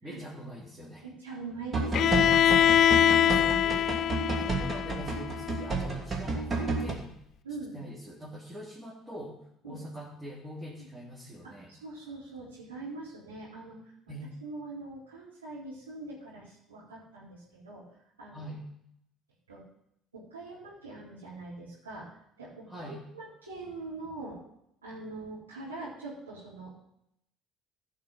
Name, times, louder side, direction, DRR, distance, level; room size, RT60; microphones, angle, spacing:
voice 1, 0.0-1.0 1.7-2.7 3.1-3.9 4.3-7.1 7.7-9.4 9.6-11.7 14.1-14.3 18.3-18.6 22.7-23.0, equal, 15° right, -6 dB, 3.2 m, -43 dB
voice 2, 1.0-2.8 7.4-7.8 9.6-9.8 10.8-10.9 11.4-13.9 14.4-17.9 18.2-18.5 19.5-19.6 20.1-24.4 24.8-26.7, right 3 dB, 90° right, -11 dB, 4.0 m, -43 dB
sound 1, 1.7-6.9, right 3 dB, 30° right, 2.5 m, -31 dB
Bowed string instrument, 1.9-5.8, left 10 dB, 55° left, 0.3 m, -24 dB
15.0 x 5.9 x 5.6 m, 0.75 s
hypercardioid pair, 55°, 0 cm